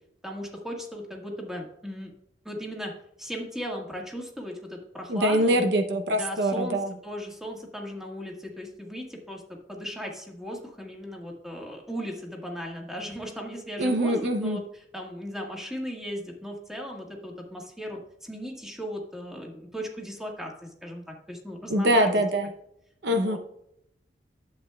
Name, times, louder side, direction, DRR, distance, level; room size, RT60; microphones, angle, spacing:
voice 1, 0.2-2.1 2.4-2.9 3.2-5.6 6.1-6.8 7.0-9.4 9.7-22.2 23.1-23.4, equal, 5° right, 0 dB, 1.6 m, -37 dB
voice 2, 5.1-6.9 13.8-14.6 21.7-22.5 23.0-23.4, right 1 dB, 65° right, 7 dB, 0.7 m, -24 dB
12.0 x 8.0 x 2.3 m, 0.78 s
head